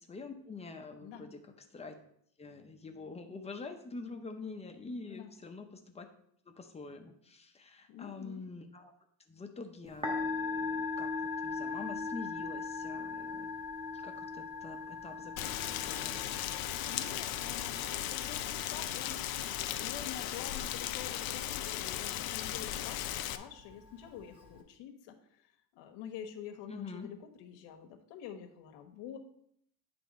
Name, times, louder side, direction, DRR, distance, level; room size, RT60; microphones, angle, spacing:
voice 1, 0.1-2.0 2.4-6.1 6.5-8.9 9.3-13.5 13.9-16.3 26.7-27.1, left 4 dB, 15° left, 5 dB, 0.6 m, -46 dB
voice 2, 1.0-1.3 5.0-5.3 7.9-8.4 16.8-19.3 19.8-25.2 25.7-29.2, left 9 dB, 85° left, 4 dB, 1.2 m, -47 dB
Musical instrument, 9.9-24.6, left 4 dB, 10° right, 1.1 m, -41 dB
Rain, 15.4-23.4, left 12 dB, 55° left, 0.6 m, -37 dB
10.0 x 3.4 x 5.2 m, 0.69 s
cardioid pair, 160°, 42 cm